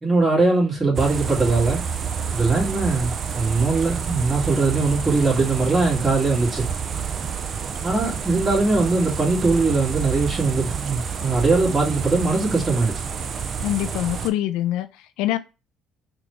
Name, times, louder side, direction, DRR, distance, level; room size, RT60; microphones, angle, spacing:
voice 1, 0.0-1.8 2.3-6.7 7.8-13.0, right 3 dB, 25° right, 2.0 m, -21 dB
sound 1, 0.9-14.3, right 6 dB, 50° right, 0.5 m, -29 dB
voice 2, 13.6-15.4, left 13 dB, 80° left, 0.3 m, -25 dB
4.0 x 2.3 x 3.0 m
hypercardioid pair, 65°, 0 cm